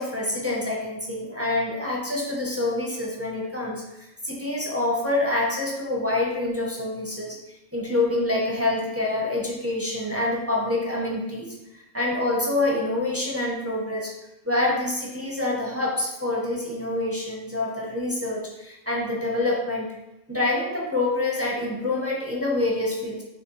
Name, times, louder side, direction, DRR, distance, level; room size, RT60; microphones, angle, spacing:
voice 1, 0.0-3.8 4.2-7.4 7.7-14.1 14.4-19.9 20.3-23.2, left 2 dB, 20° right, -4 dB, 0.4 m, -26 dB
4.9 x 3.1 x 3.0 m, 0.92 s
omnidirectional pair, 1.4 m